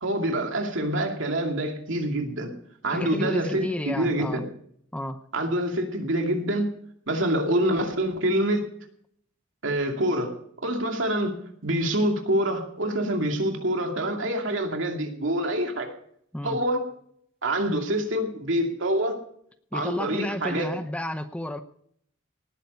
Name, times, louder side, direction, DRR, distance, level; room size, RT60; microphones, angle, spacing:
voice 1, 0.0-2.5 2.8-4.5 5.3-6.7 7.1-8.7 9.6-10.3 10.6-11.4 11.6-15.9 16.4-16.8 17.4-19.2 19.7-20.8, right 1 dB, 70° right, 3 dB, 2.5 m, -26 dB
voice 2, 2.9-4.4 4.9-5.2 16.3-16.6 19.7-21.6, left 1 dB, 5° left, 9 dB, 0.7 m, -31 dB
19.0 x 9.2 x 5.4 m, 0.66 s
head